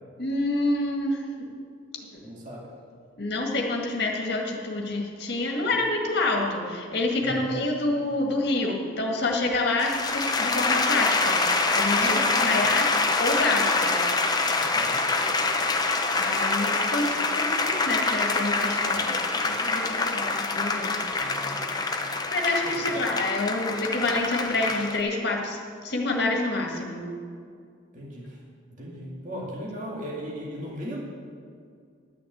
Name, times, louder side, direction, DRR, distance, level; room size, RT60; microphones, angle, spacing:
voice 1, 0.2-1.5 2.1-2.2 3.2-12.8 13.2-13.9 16.2-19.2 19.4-21.2 22.3-27.0, left 2 dB, 55° left, 0 dB, 1.8 m, -28 dB
voice 2, 2.2-2.7 7.2-7.6 11.9-12.7 14.6-15.1 21.1-21.7 22.6-23.0 27.9-28.4 28.7-31.0, equal, 40° right, -3 dB, 2.2 m, -37 dB
sound 1, 9.8-25.0, left 3 dB, 20° left, 0.7 m, -25 dB
11.5 x 6.2 x 8.6 m, 2.2 s
head